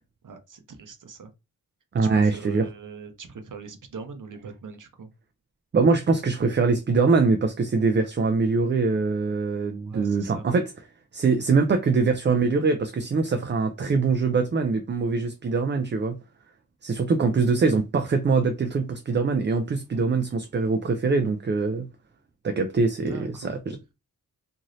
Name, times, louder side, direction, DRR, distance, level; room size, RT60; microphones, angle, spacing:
voice 1, 0.2-1.3 1.9-5.1 9.8-10.5 23.1-23.6, right 5 dB, 55° right, 0.8 m, -41 dB
voice 2, 1.9-2.7 5.7-10.7 11.1-16.2 16.8-21.9 22.4-23.8, right 4 dB, 30° right, 0.4 m, -23 dB
3.0 x 2.6 x 2.6 m
wide cardioid pair, 100°, 36 cm